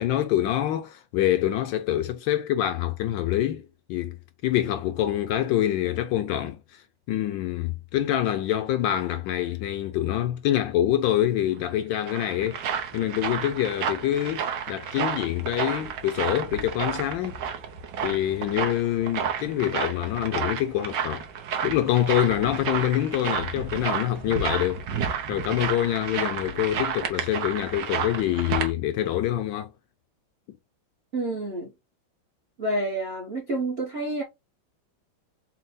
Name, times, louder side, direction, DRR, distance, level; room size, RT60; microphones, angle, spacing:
voice 1, 0.0-4.2 4.4-6.8 7.1-12.6 12.9-17.4 18.0-21.2 21.6-24.9 25.3-29.7, left 12 dB, 75° left, 1.2 m, -26 dB
sound 1, 11.7-28.7, right 7 dB, 65° right, 1.3 m, -31 dB
voice 2, 31.1-31.7 32.6-34.2, right 1 dB, 50° right, 0.7 m, -29 dB
4.3 x 2.1 x 3.9 m
omnidirectional pair, 2.3 m